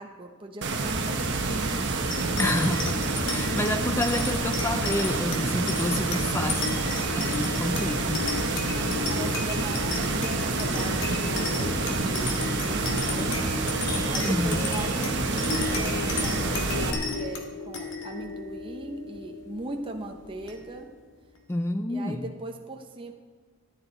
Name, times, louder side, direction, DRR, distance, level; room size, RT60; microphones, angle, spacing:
voice 1, 0.0-2.1 6.8-7.3 9.0-20.9 21.9-23.1, right 2 dB, 25° right, 2 dB, 0.8 m, -40 dB
sound 1, 0.6-16.9, right 3 dB, 55° right, 1.1 m, -28 dB
sound 2, 2.1-20.9, left 3 dB, 60° left, 1.7 m, -34 dB
voice 2, 2.4-3.0 3.3-6.8 7.1-8.3 14.2-14.7 21.5-22.3, left 1 dB, 10° left, 8 dB, 0.4 m, -29 dB
13.5 x 10.0 x 4.0 m, 1.5 s
head